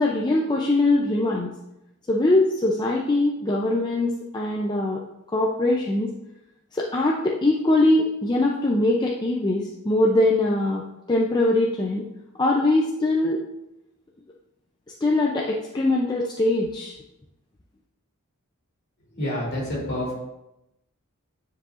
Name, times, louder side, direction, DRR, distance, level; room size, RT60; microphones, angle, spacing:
voice 1, 0.0-1.5 2.1-5.0 5.3-6.1 6.7-10.8 11.1-12.0 12.4-13.4 15.0-16.9, left 2 dB, 20° left, -2 dB, 0.4 m, -22 dB
voice 2, 19.1-20.1, left 1 dB, 50° left, -5 dB, 2.4 m, -28 dB
9.4 x 4.8 x 2.5 m, 0.90 s
head